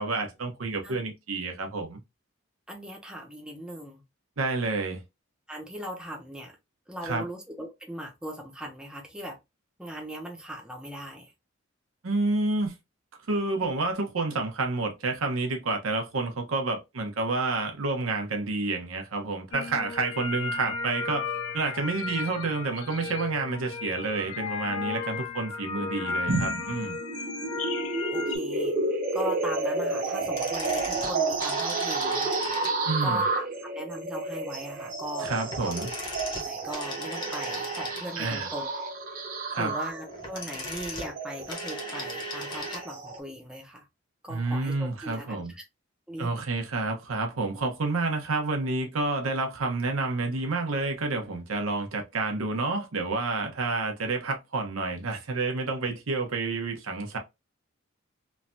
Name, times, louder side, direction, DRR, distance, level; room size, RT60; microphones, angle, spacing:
voice 1, 0.0-2.0 4.4-5.0 7.0-7.3 12.0-12.7 13.3-21.3 21.5-27.0 32.9-33.2 35.2-35.9 38.2-38.5 39.5-39.7 44.3-45.5 46.2-57.2, right 3 dB, 85° right, 0.8 m, -29 dB
voice 2, 2.7-4.0 5.5-6.6 6.9-9.4 9.8-11.3 28.1-28.8 29.1-32.3 33.0-35.3 35.6-35.9 36.4-38.7 39.1-39.2 39.6-43.9 44.2-45.6 46.1-46.3, equal, 5° right, 0.6 m, -39 dB
sound 1, 19.5-28.4, left 4 dB, 70° left, 0.6 m, -34 dB
sound 2, 26.3-43.2, right 3 dB, 45° right, 0.7 m, -31 dB
sound 3, 30.2-33.1 35.5-38.4 40.0-42.9 43.1-43.2, equal, 25° left, 0.9 m, -37 dB
3.2 x 2.2 x 2.6 m
head